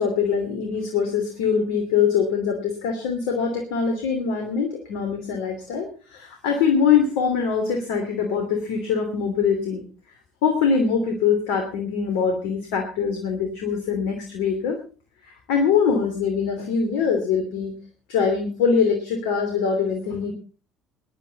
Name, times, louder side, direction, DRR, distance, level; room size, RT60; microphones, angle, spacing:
voice 1, 0.0-9.8 10.4-14.8 15.2-17.7 18.1-20.3, left 6 dB, 70° left, 4 dB, 2.9 m, -23 dB
21.0 x 11.0 x 4.2 m, 0.37 s
hypercardioid pair, 60°, 0 cm